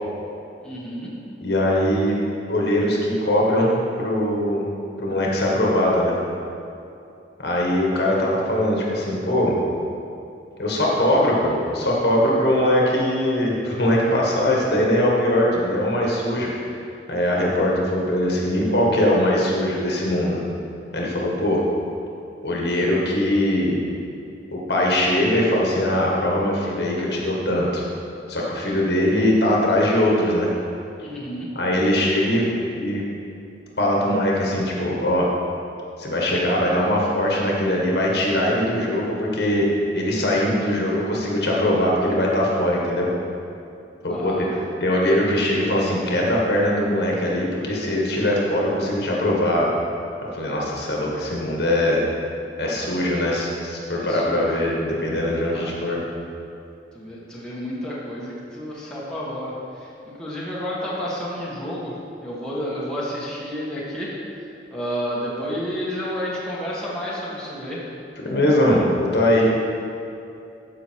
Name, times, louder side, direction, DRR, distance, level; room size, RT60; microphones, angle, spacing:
voice 1, 0.6-1.1 31.0-31.5 44.1-44.6 53.9-54.6 55.5-55.8 56.9-61.9 62.2-64.1 64.7-67.8, equal, 5° left, -8 dB, 1.6 m, -30 dB
voice 2, 1.4-2.2 2.5-4.7 5.0-6.1 7.4-9.5 10.6-16.5 17.1-20.4 20.9-21.6 22.4-23.8 24.5-27.8 28.3-30.5 31.6-32.5 32.7-33.1 33.8-35.3 36.0-43.1 44.0-44.5 44.8-49.7 50.3-52.0 52.6-56.0 68.3-69.5, left 1 dB, 65° left, -3 dB, 1.7 m, -21 dB
13.5 x 5.2 x 4.7 m, 2.7 s
head